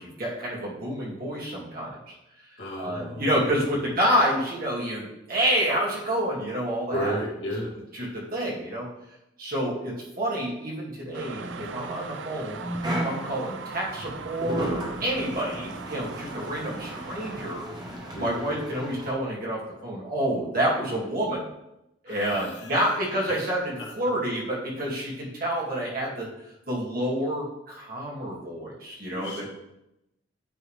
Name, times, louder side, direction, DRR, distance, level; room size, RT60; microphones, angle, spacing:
voice 1, 0.0-2.1 2.8-7.2 7.9-8.9 9.4-21.4 22.0-29.4, equal, 50° right, -4 dB, 2.2 m, -28 dB
voice 2, 2.6-3.3 3.7-3.9 6.9-7.8 18.1-18.4 22.1-22.8 23.8-23.9 29.1-29.4, equal, 70° left, -5 dB, 2.2 m, -33 dB
sound 1, 11.1-17.6, right 5 dB, 75° right, 0.4 m, -40 dB
sound 2, 11.4-19.1, right 1 dB, 20° right, 1.0 m, -35 dB
9.3 x 3.7 x 3.3 m, 0.87 s
head